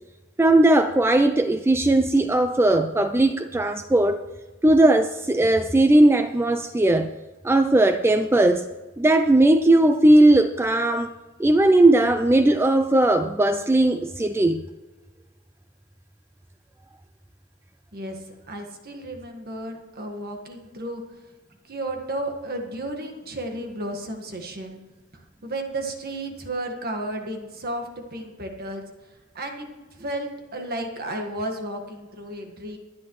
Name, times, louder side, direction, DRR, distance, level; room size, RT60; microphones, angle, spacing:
voice 1, 0.4-4.2 4.6-7.1 7.4-8.7 9.0-11.1 11.4-14.6, right 1 dB, 10° right, 9 dB, 0.3 m, -18 dB
voice 2, 18.5-21.0 21.7-24.8 25.1-28.8 29.3-32.8, right 1 dB, 45° right, 3 dB, 1.7 m, -33 dB
23.5 x 9.6 x 3.2 m, 1.2 s
head